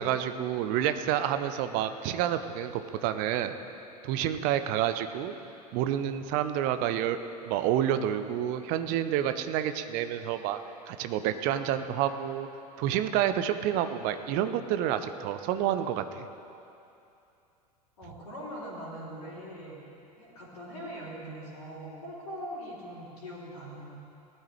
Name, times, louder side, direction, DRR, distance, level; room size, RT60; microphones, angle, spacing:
voice 1, 0.0-3.5 4.0-5.3 5.7-7.2 7.4-10.6 10.9-12.5 12.8-16.3, right 10 dB, 40° right, 10 dB, 0.7 m, -29 dB
voice 2, 18.0-19.8 20.2-23.9, equal, 65° left, -9 dB, 3.4 m, -41 dB
18.5 x 12.5 x 3.3 m, 2.7 s
figure-of-eight pair, 85°, 21 cm